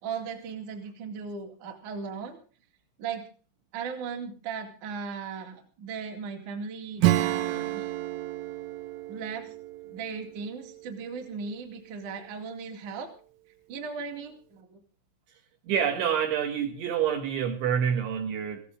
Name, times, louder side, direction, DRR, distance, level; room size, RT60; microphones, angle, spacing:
voice 1, 0.0-2.4 3.0-3.3 3.7-7.9 9.1-9.5 9.8-13.1 13.7-14.8, right 5 dB, 45° right, 3 dB, 3.0 m, -37 dB
Acoustic guitar / Strum, 7.0-11.3, right 15 dB, 90° right, 3.6 m, -30 dB
voice 2, 15.7-18.6, right 8 dB, 70° right, 3 dB, 3.9 m, -27 dB
19.0 x 16.0 x 3.7 m, 0.40 s
omnidirectional pair, 5.9 m